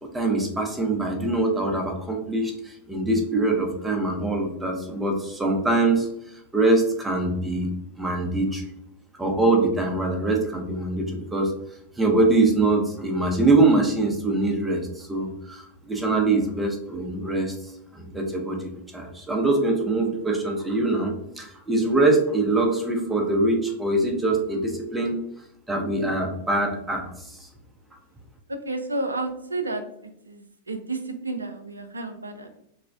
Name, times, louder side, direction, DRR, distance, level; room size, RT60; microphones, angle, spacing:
voice 1, 0.0-6.1 6.5-7.7 8.0-8.6 9.2-11.5 12.0-17.5 17.9-25.2 25.7-27.4, right 2 dB, 10° right, 2 dB, 0.6 m, -23 dB
voice 2, 28.5-29.8 30.2-32.6, right 2 dB, 80° right, 7 dB, 0.3 m, -31 dB
3.1 x 2.0 x 2.4 m, 0.77 s
figure-of-eight pair, 90°, 0 cm